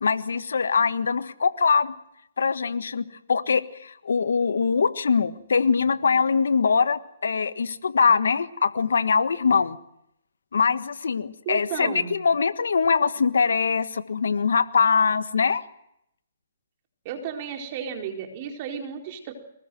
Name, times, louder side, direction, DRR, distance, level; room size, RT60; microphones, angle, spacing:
voice 1, 0.0-1.9 2.4-9.8 10.5-15.6, left 5 dB, 75° left, 12 dB, 1.4 m, -23 dB
voice 2, 11.5-12.2 17.0-19.3, right 7 dB, 40° right, 3 dB, 4.3 m, -33 dB
24.0 x 20.0 x 7.8 m, 0.79 s
hypercardioid pair, 140°, 0 cm